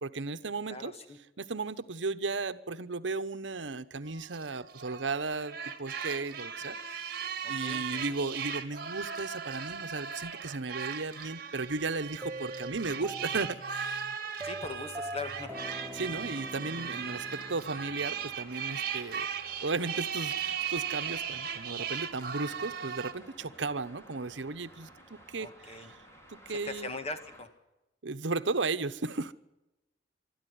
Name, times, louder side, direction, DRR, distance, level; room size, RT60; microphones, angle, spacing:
voice 1, 0.0-0.9 1.4-14.1 15.9-19.3 19.6-26.0 26.3-26.9 28.0-29.3, right 3 dB, 80° right, 1.0 m, -35 dB
voice 2, 0.7-1.2 7.4-8.1 14.4-15.6 25.4-25.9 26.5-27.5, left 3 dB, 35° left, 1.9 m, -40 dB
sound 1, 4.1-23.1, right 7 dB, 55° right, 1.9 m, -37 dB
sound 2, 12.2-18.4, right 1 dB, 10° right, 1.0 m, -43 dB
Traffic noise roadway noise, 15.4-27.4, equal, 15° left, 4.3 m, -55 dB
24.5 x 13.0 x 9.5 m
head